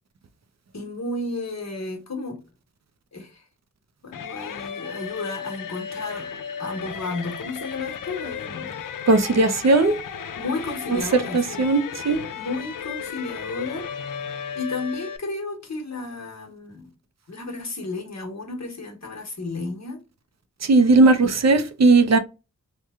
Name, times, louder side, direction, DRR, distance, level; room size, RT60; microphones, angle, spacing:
voice 1, 0.7-2.4 3.1-3.4 4.0-8.9 10.4-11.7 12.3-13.9 14.5-16.9 17.3-20.0, left 3 dB, 55° left, 1.0 m, -33 dB
sound 1, 4.1-15.2, left 7 dB, 85° left, 0.5 m, -35 dB
voice 2, 9.1-10.0 10.9-11.0 11.3-12.2 20.6-22.2, right 3 dB, 55° right, 0.5 m, -17 dB
3.0 x 2.1 x 3.5 m
wide cardioid pair, 80°, 32 cm